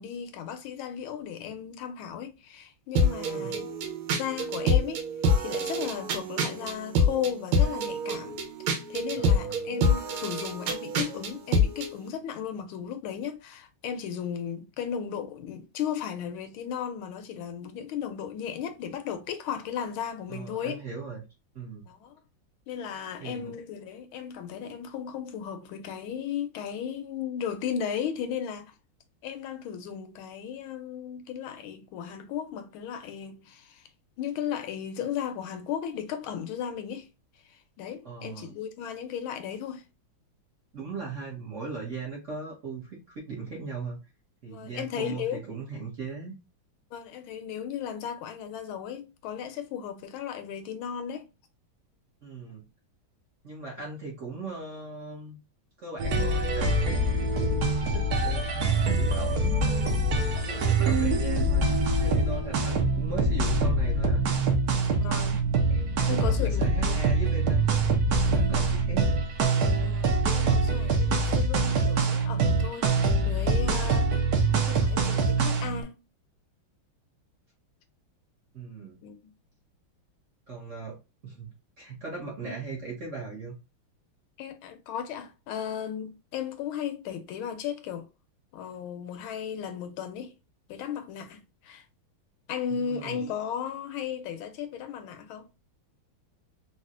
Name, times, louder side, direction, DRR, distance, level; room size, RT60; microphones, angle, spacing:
voice 1, 0.0-3.7 4.1-5.0 5.4-8.4 8.6-20.8 21.9-22.1 22.7-28.7 29.2-33.9 34.2-37.1 37.5-39.9 44.4-45.4 46.9-51.3 65.0-65.4 66.1-67.0 69.8-74.2 74.6-76.0 79.0-79.3 82.4-82.6 84.4-88.1 88.5-90.3 90.7-91.8 92.5-95.5, left 8 dB, 80° left, 1.4 m, -35 dB
sound 1, 3.0-11.9, left 1 dB, 85° right, 1.6 m, -26 dB
voice 2, 3.1-3.5 9.2-9.8 20.3-21.2 21.5-21.9 23.2-23.5 38.0-38.5 40.7-44.0 44.4-46.3 52.2-52.6 53.4-55.4 55.8-56.8 57.2-58.7 58.9-60.0 60.4-61.6 62.0-64.2 65.7-67.9 68.2-69.2 73.9-74.0 78.5-79.0 80.5-81.0 81.2-83.6 92.7-93.2, right 4 dB, 45° right, 1.2 m, -39 dB
sound 2, 56.0-75.8, right 2 dB, 65° right, 1.0 m, -24 dB
4.1 x 2.4 x 2.4 m
omnidirectional pair, 2.3 m